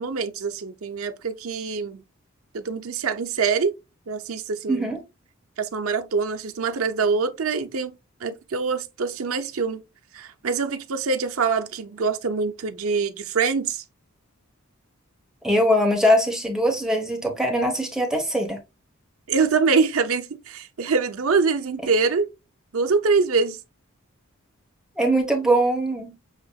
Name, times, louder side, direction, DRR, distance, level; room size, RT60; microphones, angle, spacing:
voice 1, 0.0-2.0 2.5-3.7 4.1-4.9 5.6-7.9 8.2-9.8 10.1-13.8 19.3-22.3 22.7-23.6, right 5 dB, 75° right, 0.7 m, -24 dB
voice 2, 4.7-5.0 15.4-18.6 25.0-26.1, equal, 5° right, 1.0 m, -21 dB
7.4 x 2.8 x 2.3 m
head